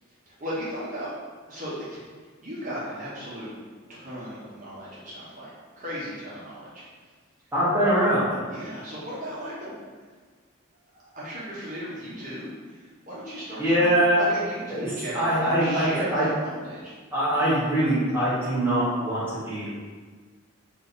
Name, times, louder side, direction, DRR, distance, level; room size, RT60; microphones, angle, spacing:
voice 1, 0.3-1.1 1.5-2.0 2.4-3.5 3.9-5.5 5.8-6.8 8.5-9.7 10.9-16.9, equal, 40° right, -8 dB, 1.0 m, -36 dB
voice 2, 7.5-8.3 13.6-14.2 14.7-16.2 17.1-19.7, right 1 dB, 10° right, -11 dB, 0.9 m, -23 dB
3.2 x 2.7 x 4.0 m, 1.5 s
head